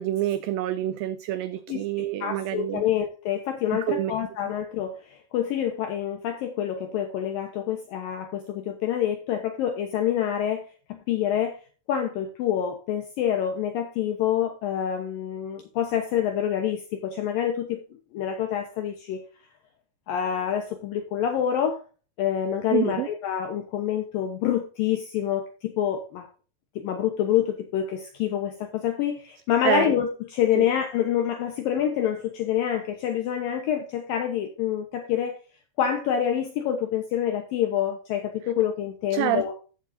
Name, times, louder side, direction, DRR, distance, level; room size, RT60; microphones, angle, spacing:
voice 1, 0.0-2.8 3.9-4.1 22.7-23.1 29.6-29.9 30.6-30.7 39.1-39.5, right 13 dB, 90° right, 2.0 m, -27 dB
voice 2, 1.7-10.6 10.9-11.6 11.9-17.8 18.1-19.3 20.1-21.8 22.2-26.3 26.8-35.4 35.8-39.5, left 10 dB, 70° left, 2.5 m, -27 dB
14.0 x 7.5 x 2.7 m
omnidirectional pair, 4.7 m